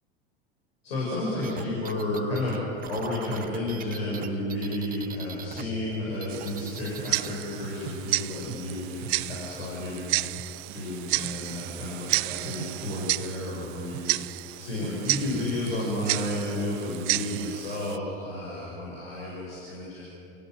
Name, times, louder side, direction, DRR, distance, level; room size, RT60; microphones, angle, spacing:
voice 1, 0.8-10.2 10.7-20.0, left 1 dB, 85° left, -5 dB, 7.4 m, -32 dB
sound 1, 1.4-5.6 5.9-7.3, right 9 dB, 30° right, 1.1 m, -42 dB
Tick-tock, 6.3-18.0, right 24 dB, 60° right, 0.5 m, -32 dB
29.0 x 17.5 x 8.0 m, 3.0 s
hypercardioid pair, 90°, 29 cm